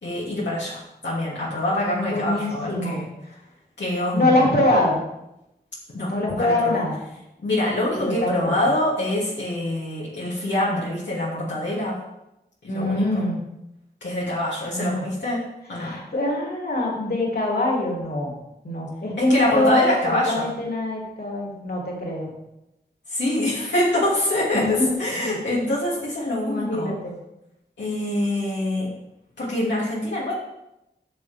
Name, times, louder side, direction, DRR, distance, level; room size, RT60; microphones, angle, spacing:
voice 1, 0.0-3.0 3.8-4.4 5.9-6.8 7.4-12.0 12.7-13.1 14.0-15.9 19.2-20.5 23.1-26.9 27.8-29.0 29.4-30.3, left 1 dB, 80° left, -7 dB, 2.8 m, -25 dB
voice 2, 2.1-3.0 4.1-5.0 6.1-7.0 8.0-8.5 12.7-13.4 14.7-15.1 15.7-18.3 18.6-22.3 24.5-24.9 25.2-25.4 26.4-27.2, left 1 dB, 60° left, -3 dB, 3.4 m, -24 dB
14.0 x 6.8 x 3.6 m, 0.87 s
cardioid pair, 45°, 18 cm